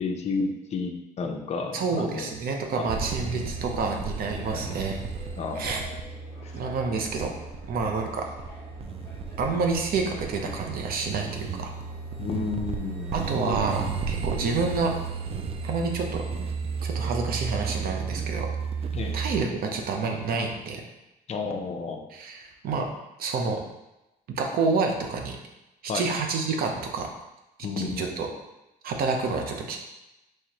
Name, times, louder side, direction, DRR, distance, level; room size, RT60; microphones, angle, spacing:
voice 1, 0.0-2.3 2.8-2.9 4.4-4.7 5.4-5.9 6.4-6.5 6.9-7.1 12.2-13.2 13.5-13.6 18.9-19.2 21.3-22.1 25.9-26.0 27.6-28.2, left 4 dB, 40° left, 3 dB, 0.6 m, -32 dB
voice 2, 1.7-5.0 5.6-5.8 6.5-7.3 7.7-8.3 9.4-11.7 13.1-14.9 15.6-16.2 16.8-18.5 19.1-20.8 22.1-22.9 23.2-23.6 24.3-25.4 25.8-27.1 27.8-28.3 28.8-29.8, right 4 dB, 60° right, 3 dB, 0.7 m, -28 dB
sound 1, 2.6-16.1, left 1 dB, 15° left, 1.2 m, -48 dB
sound 2, 2.9-19.4, right 5 dB, 35° right, 0.4 m, -34 dB
4.6 x 3.1 x 2.9 m, 0.95 s
cardioid pair, 110°, 17 cm